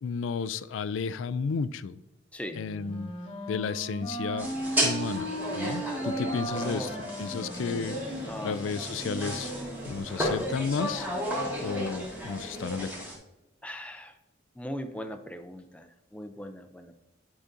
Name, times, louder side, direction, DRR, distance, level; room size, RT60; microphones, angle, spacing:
voice 1, 0.0-2.0 2.5-3.1 3.5-4.5 4.8-6.9 7.2-9.5 9.9-11.1 11.6-13.0, left 5 dB, 80° left, 15 dB, 0.3 m, -32 dB
Wind instrument woodwind instrument, 2.5-8.6, right 1 dB, 30° left, 0.9 m, -36 dB
sound 1, 4.4-13.2, equal, 10° right, 1.2 m, -33 dB
voice 2, 6.5-6.9 8.3-8.6 10.2-10.5 13.6-14.2 14.6-17.0, equal, 5° left, 7 dB, 0.4 m, -39 dB
sound 2, 7.8-12.9, right 1 dB, 45° right, 0.7 m, -46 dB
9.7 x 4.9 x 2.6 m, 0.98 s
head